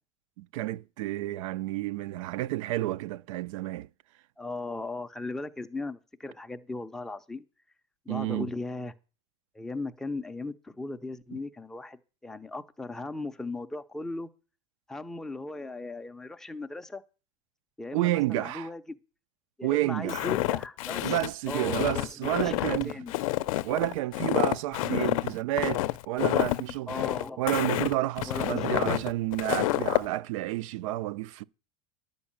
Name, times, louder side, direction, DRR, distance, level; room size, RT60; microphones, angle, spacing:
voice 1, 0.4-3.9 8.1-8.5 17.9-18.7 19.6-20.3 21.0-23.0 23.6-27.0 27.4-31.4, right 16 dB, 65° right, 0.5 m, -30 dB
voice 2, 4.4-7.5 8.1-8.9 9.5-14.3 14.9-17.0 17.8-19.0 19.6-21.1 21.5-23.1 24.9-25.1 26.9-27.5 28.3-29.1, left 2 dB, 5° left, 0.4 m, -37 dB
Walk footsteps, 20.1-30.1, left 17 dB, 75° left, 0.5 m, -29 dB
11.0 x 5.3 x 8.6 m
supercardioid pair, 165°, 18 cm